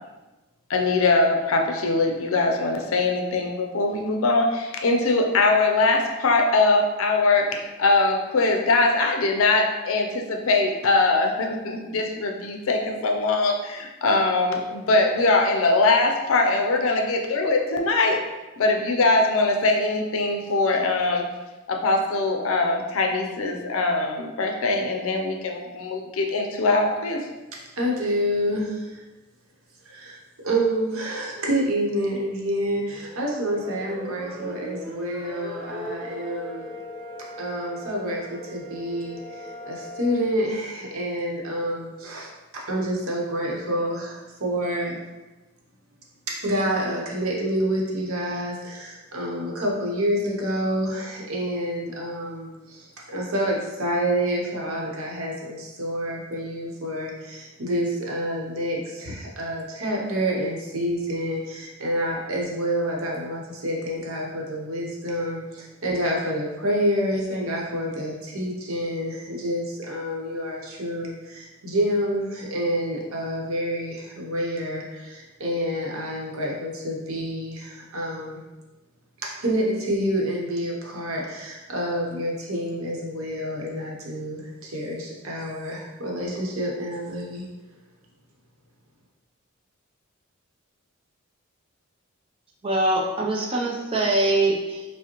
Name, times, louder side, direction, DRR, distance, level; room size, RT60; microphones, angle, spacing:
voice 1, 0.7-18.2 18.6-21.2 21.7-27.2, left 3 dB, 70° left, 3 dB, 0.5 m, -22 dB
voice 2, 27.5-29.0 29.9-30.2 30.4-36.7 37.4-45.0 46.3-78.4 79.2-87.5, equal, 75° right, -2 dB, 0.8 m, -28 dB
sound 1, 32.5-40.2, equal, 5° right, 1.1 m, -39 dB
voice 3, 92.6-94.8, right 2 dB, 25° right, -1 dB, 0.5 m, -23 dB
4.9 x 2.1 x 2.9 m, 1.1 s
head